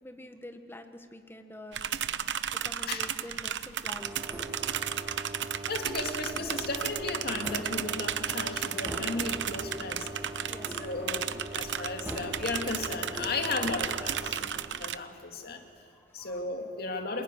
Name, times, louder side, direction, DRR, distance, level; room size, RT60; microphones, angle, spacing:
voice 1, 0.0-1.8 2.5-4.4 10.5-10.8 15.5-16.5 17.1-17.2, left 1 dB, 10° left, 7 dB, 1.3 m, -47 dB
sound 1, 1.7-15.0, right 9 dB, 75° right, 0.8 m, -34 dB
sound 2, 4.0-14.4, right 1 dB, 10° right, 3.2 m, -41 dB
voice 2, 5.7-10.1 10.4-10.5 10.8-14.4 14.8-15.7 16.1-17.2, left 3 dB, 60° left, 4 dB, 2.3 m, -35 dB
26.0 x 21.0 x 9.9 m, 2.8 s
head